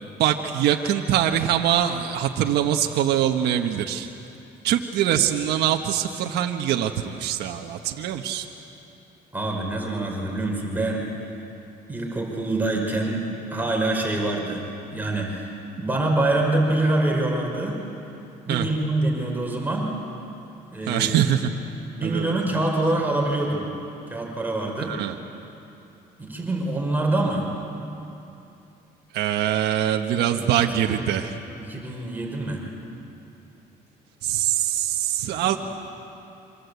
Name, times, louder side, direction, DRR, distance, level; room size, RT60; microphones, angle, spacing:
voice 1, 0.2-4.1 4.6-8.4 18.5-18.6 20.9-21.5 22.0-22.2 24.9-25.1 29.1-31.3 34.2-35.6, right 10 dB, 80° right, 3 dB, 1.4 m, -23 dB
voice 2, 9.3-11.3 11.9-15.5 15.8-17.8 18.5-20.0 20.7-21.2 21.8-23.7 24.1-25.0 26.2-27.5 30.3-30.5 30.8-31.1 31.6-32.6 35.3-35.6, right 2 dB, 10° right, -1 dB, 5.3 m, -25 dB
27.5 x 25.0 x 8.3 m, 2.8 s
cardioid pair, 110°, 17 cm